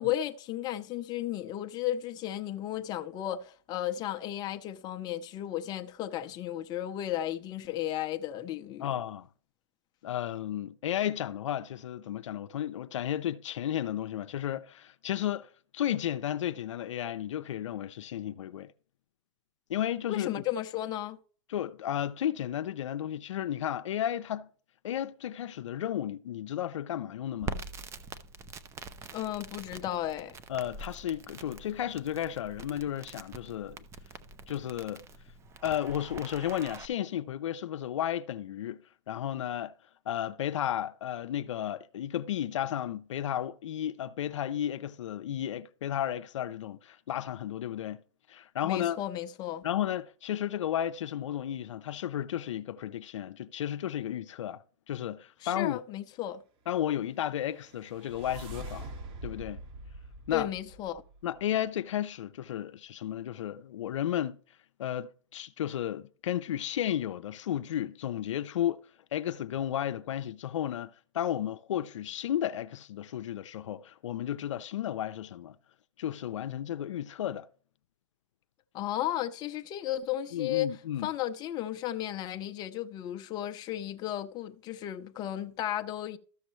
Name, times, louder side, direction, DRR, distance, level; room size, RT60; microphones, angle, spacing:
voice 1, 0.0-8.9 20.1-21.2 29.1-30.4 48.6-49.7 55.4-56.4 60.3-61.0 78.7-80.7 81.0-86.2, left 12 dB, 25° left, 0.6 m, -34 dB
voice 2, 8.8-9.3 10.0-18.7 19.7-20.4 21.5-24.5 24.8-27.6 30.5-33.8 34.5-35.0 35.6-39.7 40.1-48.0 48.3-49.0 49.6-54.6 54.9-55.8 56.7-58.9 59.2-59.6 60.3-60.5 61.2-64.4 64.8-68.8 69.1-75.6 76.0-77.5 80.3-81.1, left 11 dB, 80° left, 0.5 m, -33 dB
Crackle, 27.4-36.9, right 4 dB, 15° right, 0.6 m, -44 dB
sound 1, 57.3-61.4, right 1 dB, 35° right, 1.6 m, -44 dB
13.5 x 6.5 x 3.1 m
hypercardioid pair, 135°, 16 cm